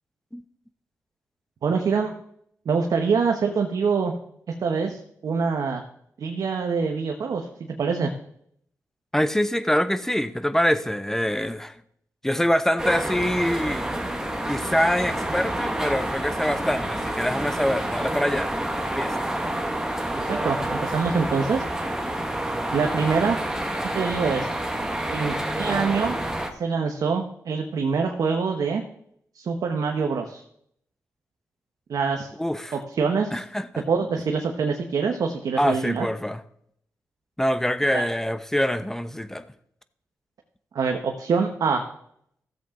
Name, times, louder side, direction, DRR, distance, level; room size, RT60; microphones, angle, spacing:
voice 1, 1.6-2.1 2.6-4.1 4.6-5.8 6.2-8.1 20.3-21.6 22.7-23.4 23.9-24.5 25.1-26.2 26.6-28.8 29.3-30.4 31.9-32.3 32.7-33.3 33.7-36.1 37.9-38.0 40.7-41.8, right 5 dB, 70° right, 1.2 m, -25 dB
voice 2, 9.1-11.8 12.2-13.9 14.5-19.1 32.4-32.7 33.3-33.8 35.6-36.4 37.4-39.4, equal, 5° left, 0.8 m, -25 dB
sound 1, 12.8-26.5, right 1 dB, 10° right, 1.7 m, -28 dB
14.5 x 7.7 x 3.8 m
cardioid pair, 65°, 6 cm